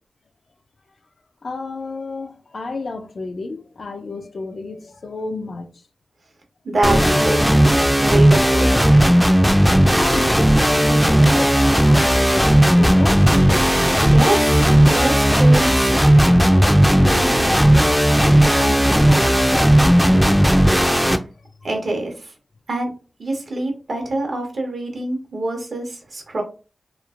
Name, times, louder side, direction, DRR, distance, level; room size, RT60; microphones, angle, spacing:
voice 1, 1.4-5.7 9.6-13.5 17.0-19.4 19.8-21.1, left 3 dB, 75° left, 0.4 m, -32 dB
voice 2, 6.6-7.4 8.0-8.9 14.1-14.5 14.8-15.7 21.6-22.3 22.7-22.9 23.2-26.4, right 2 dB, 75° right, 0.8 m, -24 dB
sound 1, 6.8-21.2, equal, ahead, 0.3 m, -15 dB
3.0 x 2.0 x 2.4 m
wide cardioid pair, 60°, 0 cm